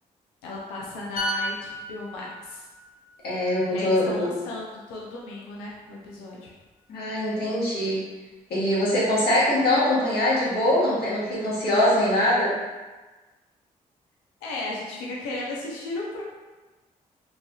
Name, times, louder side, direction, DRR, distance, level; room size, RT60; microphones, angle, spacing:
voice 1, 0.4-2.7 3.7-6.5 14.4-16.2, left 2 dB, 90° left, -3 dB, 0.5 m, -35 dB
sound 1, 1.2-4.8 5.1-5.3, equal, 45° left, 0.9 m, -35 dB
voice 2, 3.2-4.4 6.9-8.1 8.5-12.5, left 1 dB, 65° left, -8 dB, 1.2 m, -23 dB
3.1 x 2.6 x 2.3 m, 1.2 s
hypercardioid pair, 45°, 18 cm